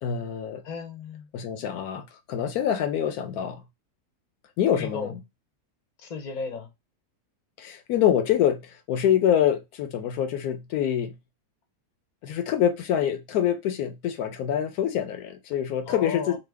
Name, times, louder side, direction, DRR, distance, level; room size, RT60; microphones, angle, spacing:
voice 1, 0.0-0.6 1.3-3.6 4.6-5.1 7.6-11.1 12.2-16.4, left 9 dB, 75° left, 1.1 m, -25 dB
voice 2, 0.6-1.3 4.7-5.2 6.0-6.7 15.9-16.4, left 5 dB, 40° left, 0.6 m, -34 dB
3.1 x 2.1 x 3.3 m
omnidirectional pair, 1.7 m